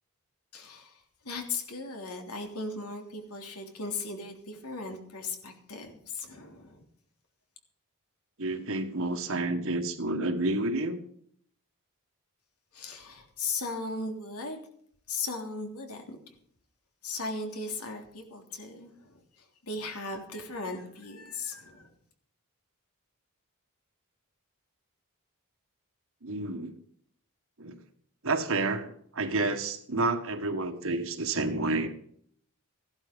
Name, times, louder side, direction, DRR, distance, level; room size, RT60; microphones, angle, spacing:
voice 1, 0.5-6.8 12.7-14.6 15.1-16.2 17.0-21.9, left 3 dB, 80° left, 3 dB, 3.3 m, -37 dB
voice 2, 8.4-11.0 26.2-26.8 27.6-27.7 28.2-31.9, right 2 dB, 65° right, 7 dB, 1.7 m, -30 dB
15.5 x 12.0 x 5.3 m, 0.64 s
head